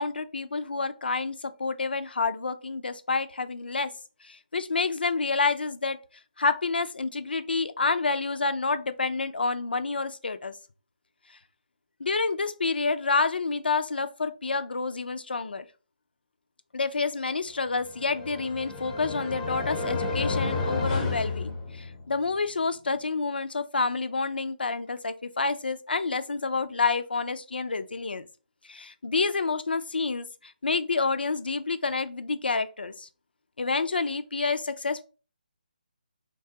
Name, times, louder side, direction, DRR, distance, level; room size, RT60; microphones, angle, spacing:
voice 1, 0.0-3.9 4.2-6.0 6.4-10.6 12.0-15.7 16.7-28.3 28.7-33.1 33.6-35.0, left 4 dB, 85° left, 0.4 m, -28 dB
sound 1, 17.8-22.2, left 3 dB, 15° left, 0.5 m, -31 dB
3.1 x 2.3 x 2.7 m
figure-of-eight pair, 155°, 5 cm